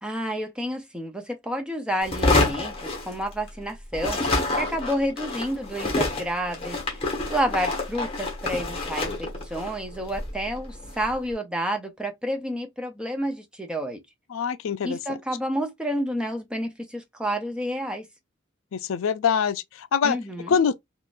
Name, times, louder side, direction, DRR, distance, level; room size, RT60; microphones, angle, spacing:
voice 1, 0.0-4.2 4.5-7.0 7.3-14.0 14.8-18.1 20.0-20.6, equal, 5° right, 0.6 m, -30 dB
sound 1, 2.0-3.6 3.9-11.1, left 2 dB, 30° left, 1.1 m, -28 dB
voice 2, 14.3-15.2 18.7-20.2 20.5-20.8, left 6 dB, 85° left, 0.4 m, -24 dB
3.6 x 2.4 x 2.4 m
head